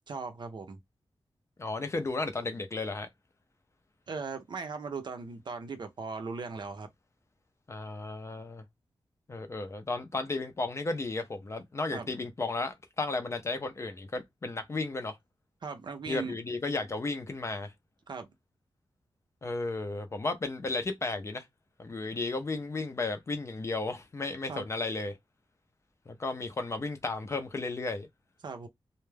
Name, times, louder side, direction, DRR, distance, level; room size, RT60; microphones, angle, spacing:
voice 1, 0.1-0.8 4.1-6.9 11.9-12.1 15.6-16.4 18.1-18.3 24.5-24.7 28.4-28.7, right 4 dB, 55° right, 0.5 m, -38 dB
voice 2, 1.6-3.1 7.7-8.6 9.3-15.2 16.1-17.7 19.4-21.5 21.8-25.2 26.1-28.1, left 3 dB, 30° left, 0.5 m, -34 dB
2.2 x 2.1 x 3.2 m
wide cardioid pair, 165°, 9 cm